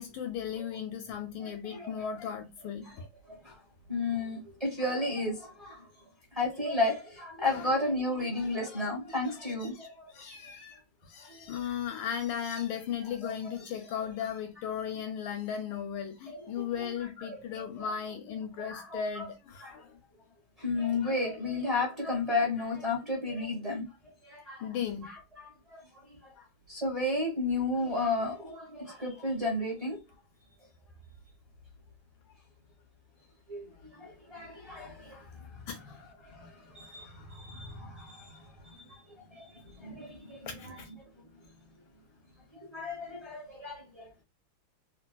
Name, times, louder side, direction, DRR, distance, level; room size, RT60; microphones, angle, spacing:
voice 1, 0.0-2.9 7.5-7.7 8.4-8.9 9.4-20.0 24.6-25.1 35.7-36.0 40.5-40.9, left 8 dB, 75° left, 1.2 m, -37 dB
voice 2, 1.4-2.3 2.9-3.0 3.3-3.6 3.9-5.9 6.3-10.2 11.2-11.5 13.2-13.3 16.3-16.9 17.2-17.6 18.6-19.3 19.6-19.8 20.6-24.6 25.0-30.0 33.5-35.7 36.2-41.1 42.5-44.1, left 2 dB, 25° right, 0.8 m, -34 dB
3.3 x 2.6 x 2.2 m
omnidirectional pair, 2.4 m